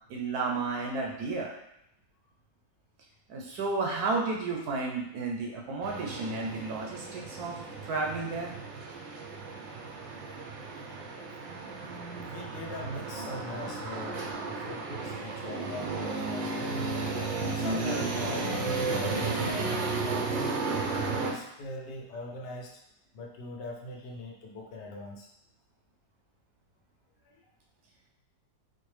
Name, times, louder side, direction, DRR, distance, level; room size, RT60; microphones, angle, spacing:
voice 1, 0.1-1.5 3.3-7.6 7.8-8.5, right 3 dB, 70° right, -1 dB, 1.0 m, -32 dB
sound 1, 5.8-21.3, right 3 dB, 90° right, 1.3 m, -34 dB
voice 2, 11.4-17.0 17.5-20.4 21.0-22.8 23.1-25.3 27.2-27.4, left 1 dB, 75° left, -1 dB, 1.3 m, -41 dB
4.5 x 2.1 x 3.2 m, 0.79 s
omnidirectional pair, 1.9 m